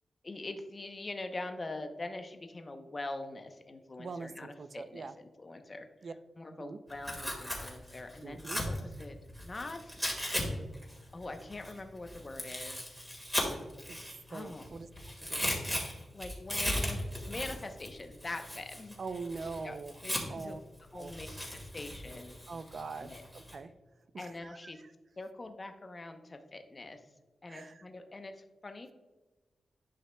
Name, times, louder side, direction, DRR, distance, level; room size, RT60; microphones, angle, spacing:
voice 1, 0.2-9.2 9.4-10.0 11.1-12.8 14.3-14.7 16.1-19.0 19.6-20.6 20.9-21.3 21.5-22.4 23.0-23.2 24.2-24.8 25.2-27.0 27.4-28.9, left 2 dB, 30° left, 6 dB, 0.8 m, -43 dB
voice 2, 4.0-5.1 6.0-6.1 6.5-6.8 8.2-8.6 13.9-14.0 14.3-14.9 15.2-15.8 19.0-20.0 20.3-20.6 20.9-21.1 22.5-23.7 24.1-24.6 27.5-27.9, right 4 dB, 55° right, 12 dB, 0.5 m, -43 dB
Tearing, 6.9-10.4 10.7-14.7 15.0-20.5 21.0-23.5, equal, ahead, 1.9 m, -37 dB
11.0 x 5.6 x 2.2 m, 1.2 s
wide cardioid pair, 105°, 0 cm